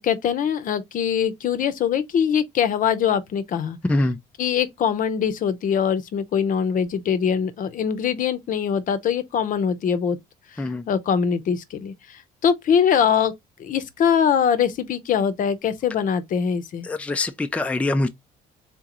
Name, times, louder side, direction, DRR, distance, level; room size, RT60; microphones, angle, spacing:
voice 1, 0.0-3.8 4.4-10.2 10.5-13.3 13.6-16.9, left 7 dB, 50° left, 0.7 m, -23 dB
voice 2, 16.9-18.1, left 2 dB, 10° left, 0.4 m, -23 dB
3.8 x 3.0 x 3.7 m
cardioid pair, 110°, 17 cm